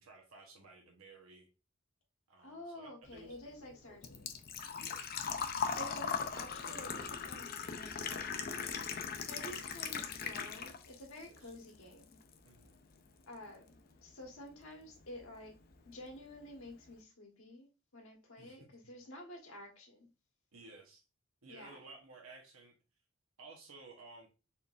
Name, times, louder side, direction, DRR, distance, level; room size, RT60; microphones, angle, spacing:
voice 1, 0.0-1.5 2.3-4.0 4.6-5.2 11.2-11.5 12.4-12.8 18.4-18.9 20.5-21.0 21.4-22.7 23.4-24.3, right 3 dB, 85° right, 1.0 m, -56 dB
voice 2, 2.4-4.3 5.7-8.7 9.3-12.2 13.3-13.8 14.0-15.6 15.8-17.7 17.9-20.1 21.5-21.8, left 1 dB, 90° left, 1.3 m, -50 dB
Engine / Trickle dribble / Fill (with liquid), 3.1-11.0 11.3-12.3 12.6-12.7 14.6-14.7 14.9-15.2 15.6-15.7 16.0-16.1, left 6 dB, 45° left, 0.5 m, -39 dB
4.4 x 3.5 x 2.4 m
head